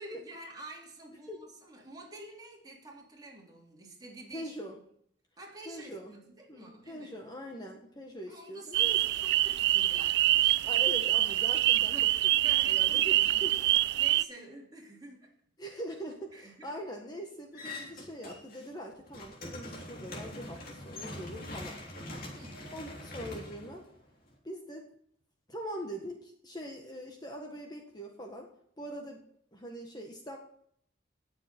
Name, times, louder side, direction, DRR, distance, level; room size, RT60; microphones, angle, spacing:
voice 1, 0.0-4.5 5.4-7.1 8.3-10.8 11.7-13.6 14.0-15.3 16.3-16.7 22.3-22.8, right 1 dB, 20° right, -2 dB, 3.3 m, -49 dB
voice 2, 4.3-4.7 5.6-6.1 6.5-9.0 10.6-11.9 12.5-13.1 13.4-13.5 15.6-21.8 22.7-23.8 24.4-24.8 25.5-28.5 28.8-29.2 29.5-30.4, equal, 20° left, 2 dB, 1.6 m, -42 dB
sound 1, 8.7-14.2, right 15 dB, 60° right, 0.4 m, -25 dB
sound 2, 17.5-18.7 19.0-24.3, left 1 dB, 50° left, 3.4 m, -43 dB
19.0 x 7.3 x 4.4 m, 0.66 s
head